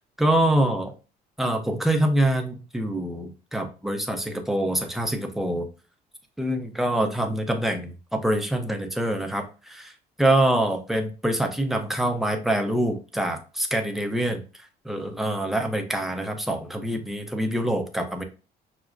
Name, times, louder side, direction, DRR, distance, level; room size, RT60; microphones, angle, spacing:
voice 1, 0.2-0.9 1.4-5.7 6.4-9.9 10.2-14.4 14.8-18.2, right 1 dB, ahead, 4 dB, 0.6 m, -25 dB
5.9 x 2.1 x 2.5 m, 0.33 s
cardioid pair, 110°, 17 cm